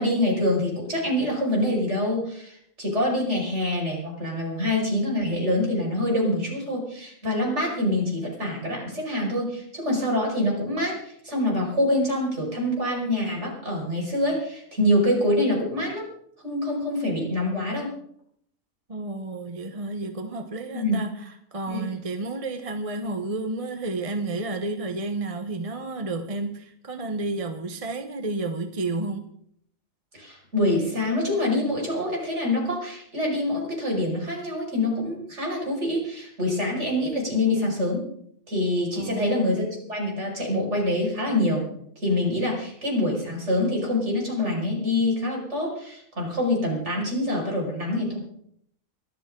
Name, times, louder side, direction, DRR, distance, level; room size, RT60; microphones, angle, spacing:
voice 1, 0.0-16.1 16.4-17.9 20.8-21.0 21.7-21.8 30.1-38.0 38.5-39.6 39.9-41.6 42.0-48.2, left 1 dB, 55° right, 6.0 m, -25 dB
voice 2, 18.9-29.3 38.9-39.6, right 2 dB, 30° right, 1.0 m, -31 dB
23.5 x 13.5 x 3.8 m
omnidirectional pair, 1.4 m